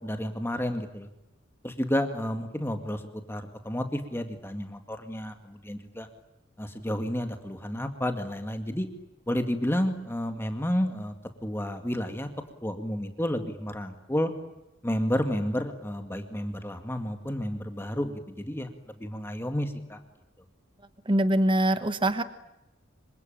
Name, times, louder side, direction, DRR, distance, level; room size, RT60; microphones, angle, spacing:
voice 1, 0.0-1.1 1.6-3.0 3.3-6.1 6.6-8.9 9.3-11.1 11.4-12.3 12.6-14.3 14.8-18.7 19.0-20.0, equal, 10° left, 6 dB, 2.1 m, -31 dB
voice 2, 21.1-22.2, right 1 dB, 25° right, 11 dB, 1.2 m, -23 dB
27.0 x 25.0 x 8.9 m, 0.92 s
head